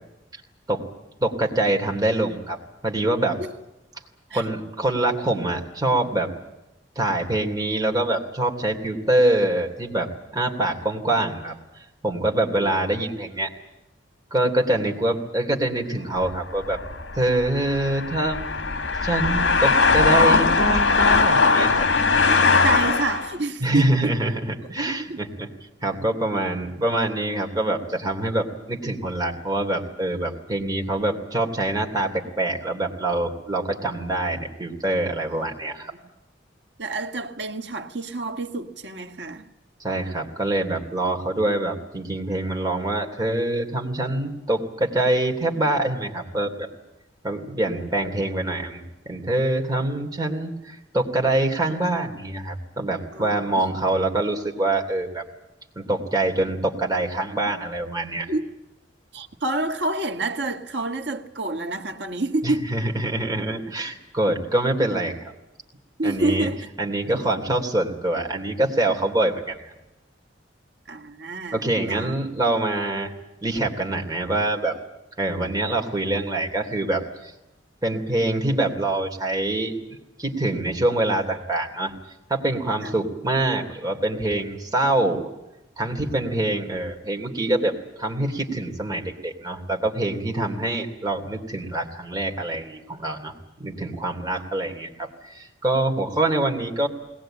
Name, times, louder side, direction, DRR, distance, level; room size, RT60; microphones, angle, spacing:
voice 1, 1.2-3.4 4.3-6.3 6.9-11.5 12.0-13.5 14.3-16.8 17.1-21.9 22.4-22.5 23.6-25.5 25.8-35.9 39.8-46.7 47.2-55.2 55.7-58.3 62.4-65.3 66.0-66.5 66.8-69.6 71.5-73.1 73.4-74.7 75.2-77.3 77.8-81.9 82.3-85.3 85.8-96.9, right 2 dB, 20° right, 3.0 m, -25 dB
voice 2, 12.5-12.8 22.4-24.1 24.6-25.2 35.3-35.5 35.9-36.0 36.8-39.5 47.6-47.9 53.1-53.7 58.3-58.5 59.1-62.7 66.0-66.7 67.1-67.3 70.9-72.1 82.8-82.9 94.3-94.4, right 2 dB, 70° right, 1.7 m, -28 dB
sound 1, 16.2-23.3, left 4 dB, 80° left, 1.6 m, -20 dB
21.5 x 19.5 x 9.0 m
head